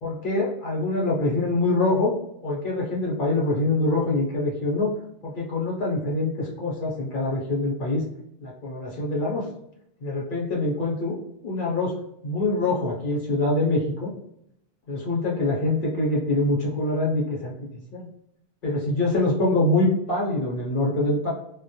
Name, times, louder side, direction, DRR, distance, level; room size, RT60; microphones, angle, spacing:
voice 1, 0.0-2.1 2.4-4.9 5.2-8.0 8.4-9.4 10.0-11.1 11.4-12.0 12.2-14.1 14.9-18.1 18.6-21.3, left 2 dB, 55° left, -4 dB, 0.9 m, -24 dB
2.2 x 2.1 x 2.7 m, 0.77 s
omnidirectional pair, 1.1 m